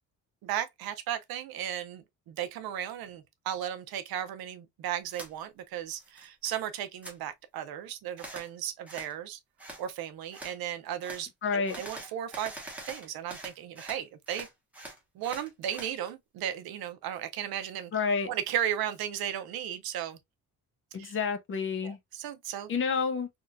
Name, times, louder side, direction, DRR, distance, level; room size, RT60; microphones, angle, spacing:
voice 1, 0.4-9.4 9.8-12.5 12.9-14.5 15.1-17.9 18.3-20.2 21.0-21.2 21.8-22.7, right 10 dB, 80° right, 0.7 m, -35 dB
sound 1, 5.1-5.3 5.7-6.5 6.8-7.2 8.2-8.5 8.9-9.1 9.6-9.8 10.3-10.6 11.0-11.2 11.7-14.0 14.3-15.9, right 1 dB, 5° right, 0.8 m, -44 dB
voice 2, 11.4-11.8 17.9-18.3 20.9-22.0 22.7-23.3, left 5 dB, 35° left, 0.5 m, -29 dB
3.7 x 2.3 x 2.4 m
cardioid pair, 175°, 36 cm